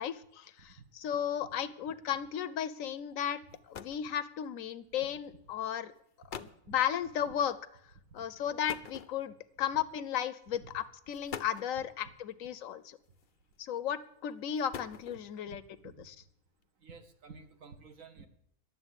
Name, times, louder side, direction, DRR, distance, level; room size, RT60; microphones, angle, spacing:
voice 1, 0.0-5.9 6.4-7.6 8.1-13.0 13.6-15.6 16.1-16.2, left 9 dB, 70° left, 15 dB, 1.0 m, -35 dB
sound 1, 3.2-3.3 3.5-4.1 5.1-5.3 6.0-6.1 6.3-6.7 8.7-9.5 10.5-10.6 11.1-11.8 13.0-13.5 14.4-15.4, left 7 dB, 55° left, 0.6 m, -45 dB
voice 2, 15.5-16.1 16.8-18.3, right 5 dB, 65° right, 7 dB, 1.6 m, -52 dB
11.5 x 7.4 x 9.7 m, 0.72 s
omnidirectional pair, 1.5 m